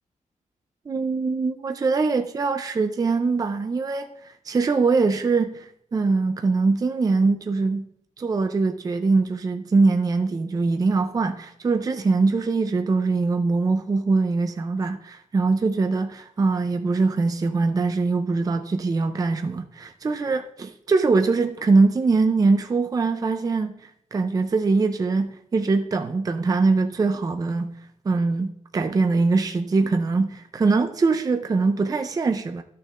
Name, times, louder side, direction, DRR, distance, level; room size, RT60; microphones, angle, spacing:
voice 1, 0.9-4.1 4.5-7.9 8.2-27.7 28.0-32.6, right 3 dB, 25° right, 6 dB, 0.5 m, -22 dB
13.5 x 6.6 x 2.5 m, 0.70 s
wide cardioid pair, 175°, 13 cm